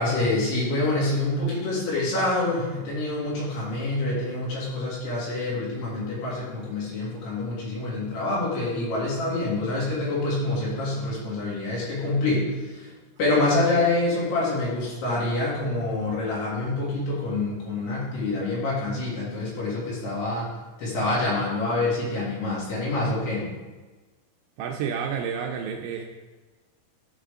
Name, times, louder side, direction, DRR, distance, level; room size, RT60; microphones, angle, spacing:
voice 1, 0.0-12.9 13.2-20.5 20.8-23.5, left 2 dB, 55° left, -6 dB, 4.6 m, -26 dB
voice 2, 24.6-26.0, right 7 dB, 80° right, 2 dB, 2.8 m, -30 dB
13.5 x 6.4 x 3.8 m, 1.3 s
omnidirectional pair, 5.8 m